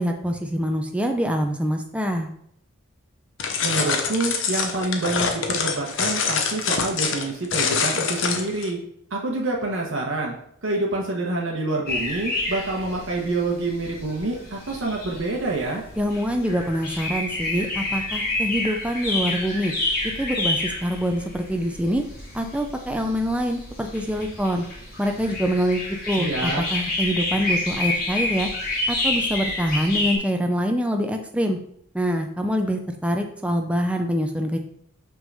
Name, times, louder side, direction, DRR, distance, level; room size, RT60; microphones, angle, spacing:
voice 1, 0.0-2.3 16.0-19.7 20.2-22.0 22.3-24.6 25.0-28.5 28.9-31.6 31.9-34.6, equal, 5° right, 4 dB, 0.5 m, -25 dB
sound 1, 3.4-8.7, left 5 dB, 60° left, 0.8 m, -25 dB
voice 2, 3.6-8.8 9.1-10.4 10.6-15.8 26.2-26.6, right 2 dB, 65° right, -2 dB, 1.1 m, -27 dB
sound 2, 11.9-30.2, left 2 dB, 45° left, 2.4 m, -29 dB
5.9 x 3.8 x 5.4 m, 0.68 s
head